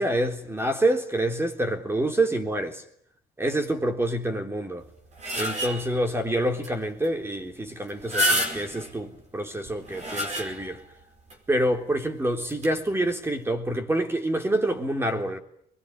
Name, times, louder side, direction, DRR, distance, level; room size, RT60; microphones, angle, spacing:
voice 1, 0.0-2.8 3.4-4.9 5.4-10.8 11.5-15.4, right 1 dB, 15° right, 3.7 m, -27 dB
sound 1, 4.8-6.0 6.6-6.7 7.0-7.1 7.9-8.9 9.6-10.8 11.3-11.4 12.5-12.7, equal, 45° right, 5.2 m, -28 dB
24.0 x 21.5 x 9.9 m
cardioid pair, 110°, 17 cm